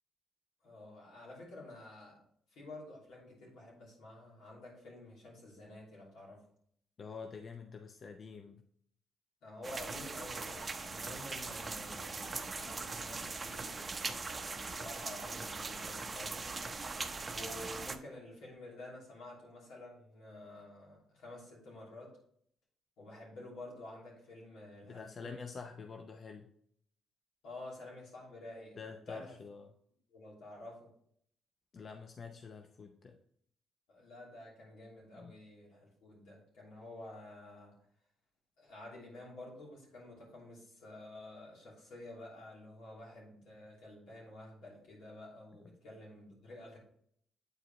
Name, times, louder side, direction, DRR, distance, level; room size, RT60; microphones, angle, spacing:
voice 1, 0.6-2.2 2.5-6.4 9.4-16.5 17.3-22.1 23.0-25.3 27.4-29.4 30.1-30.9 33.9-37.7 38.6-46.8, left 1 dB, 85° left, -3 dB, 2.9 m, -50 dB
voice 2, 7.0-8.6 24.9-26.5 28.8-29.7 31.7-33.2 35.2-35.4, left 5 dB, 45° left, 4 dB, 0.6 m, -47 dB
sound 1, 9.6-18.0, right 3 dB, 30° right, 0.6 m, -41 dB
8.1 x 4.9 x 3.0 m, 0.66 s
cardioid pair, 90°, 0 cm